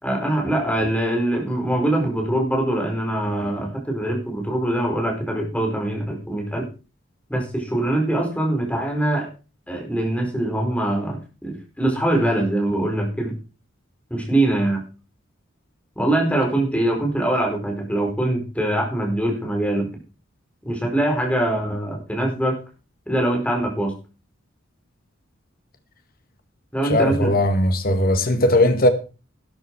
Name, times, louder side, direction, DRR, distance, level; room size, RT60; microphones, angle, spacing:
voice 1, 0.0-6.6 7.3-9.3 9.7-13.4 14.1-14.8 16.0-19.9 20.6-22.6 23.1-23.9 26.7-27.3, right 1 dB, 5° left, 4.9 m, -23 dB
voice 2, 26.8-28.9, left 1 dB, 45° left, 1.9 m, -18 dB
12.5 x 11.5 x 4.8 m
head